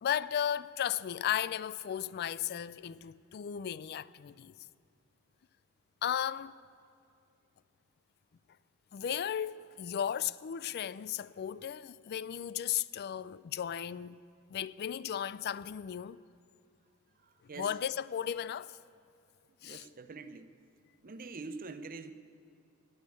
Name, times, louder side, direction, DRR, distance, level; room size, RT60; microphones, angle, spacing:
voice 1, 0.0-4.5 6.0-6.5 8.9-14.2 14.5-16.2 17.6-18.8 19.6-19.9, left 9 dB, 45° left, 0.3 m, -35 dB
voice 2, 17.2-17.7 19.6-20.5 21.0-22.1, right 3 dB, 40° right, 0.7 m, -45 dB
19.5 x 6.6 x 8.4 m
head